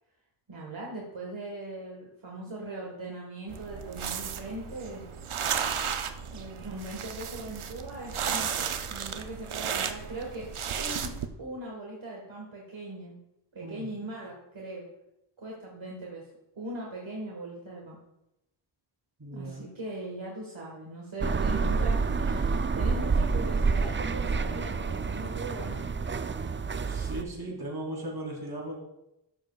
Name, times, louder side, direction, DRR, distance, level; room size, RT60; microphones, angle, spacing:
voice 1, 0.5-5.0 6.3-10.5 10.8-11.1 11.4-13.2 13.5-14.9 15.4-16.3 16.5-18.0 19.3-25.9 27.5-27.6, right 2 dB, 70° right, -3 dB, 1.6 m, -40 dB
sound 1, 3.5-11.3, right 7 dB, 90° right, 0.6 m, -34 dB
voice 2, 19.2-19.6 26.8-28.8, right 1 dB, 50° right, -2 dB, 3.1 m, -37 dB
sound 2, 21.2-27.2, right 4 dB, 25° right, 0.3 m, -28 dB
11.5 x 7.4 x 2.3 m, 0.88 s
wide cardioid pair, 55°, 48 cm